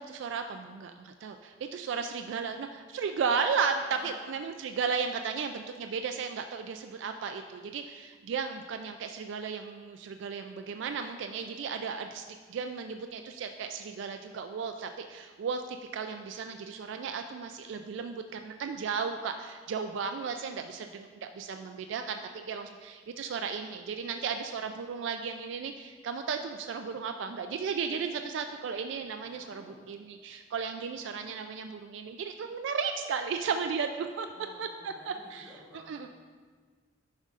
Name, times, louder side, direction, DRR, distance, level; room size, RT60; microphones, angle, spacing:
voice 1, 0.0-12.2 12.5-34.3 34.6-36.1, right 5 dB, 65° right, 6 dB, 0.3 m, -35 dB
voice 2, 29.2-29.8 34.3-36.1, equal, 20° right, -4 dB, 1.2 m, -53 dB
11.0 x 5.3 x 2.5 m, 1.5 s
head